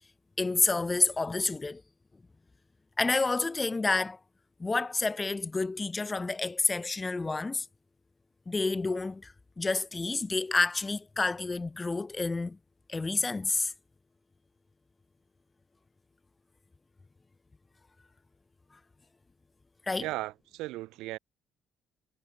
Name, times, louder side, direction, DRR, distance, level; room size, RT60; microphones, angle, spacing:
voice 1, 0.4-1.8 3.0-4.2 4.6-7.7 8.5-12.6 12.9-13.7 19.9-20.1, left 3 dB, 25° left, 0.5 m, -29 dB
voice 2, 20.0-21.2, right 18 dB, 80° right, 0.9 m, -36 dB
supercardioid pair, 65°, 0 cm